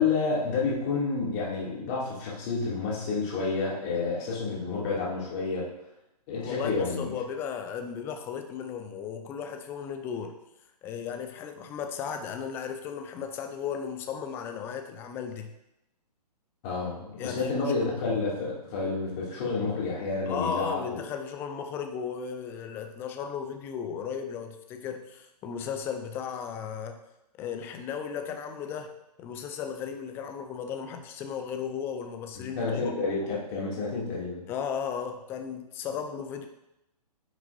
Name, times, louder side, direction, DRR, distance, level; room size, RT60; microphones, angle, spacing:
voice 1, 0.0-5.7 6.3-7.1 16.6-21.0 32.4-34.4, left 4 dB, 30° left, -5 dB, 2.5 m, -29 dB
voice 2, 6.4-10.3 10.8-15.5 17.2-17.7 20.3-27.0 27.4-28.9 29.2-32.9 34.5-36.5, left 7 dB, 10° left, 6 dB, 0.4 m, -35 dB
9.5 x 6.1 x 2.6 m, 0.88 s
figure-of-eight pair, 125°, 21 cm